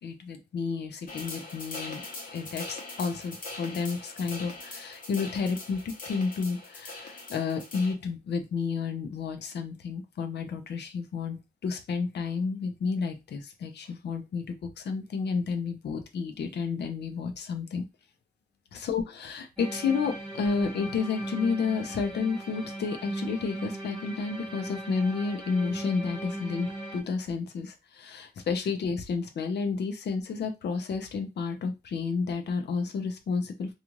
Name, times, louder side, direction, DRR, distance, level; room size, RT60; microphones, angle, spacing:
voice 1, 0.0-2.0 2.3-17.8 18.7-33.7, left 5 dB, 85° left, 6 dB, 0.6 m, -31 dB
sound 1, 1.1-7.9, left 3 dB, 55° left, 0.9 m, -42 dB
sound 2, 19.6-27.0, right 1 dB, ahead, 1.3 m, -38 dB
2.5 x 2.4 x 3.0 m, 0.24 s
wide cardioid pair, 145°, 17 cm